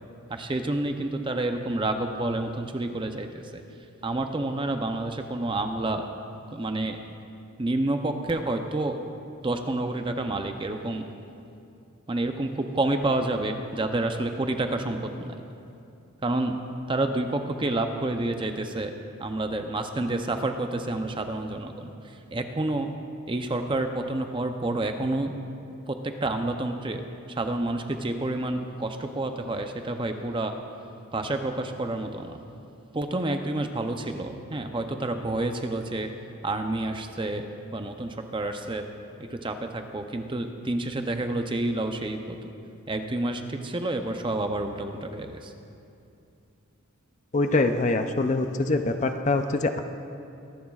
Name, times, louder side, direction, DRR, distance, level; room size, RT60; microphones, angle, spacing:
voice 1, 0.3-3.6 4.0-6.0 6.5-7.0 7.6-9.0 9.4-11.0 12.1-15.4 16.2-16.6 16.9-18.9 19.2-22.9 23.3-25.3 25.9-27.0 27.3-30.5 31.1-32.4 32.9-36.1 36.4-37.4 37.7-38.8 39.2-42.5 42.9-45.5, right 2 dB, 20° right, 6 dB, 0.6 m, -29 dB
voice 2, 47.3-49.8, left 2 dB, 35° left, 7 dB, 0.5 m, -24 dB
23.5 x 11.5 x 2.4 m, 2.6 s
head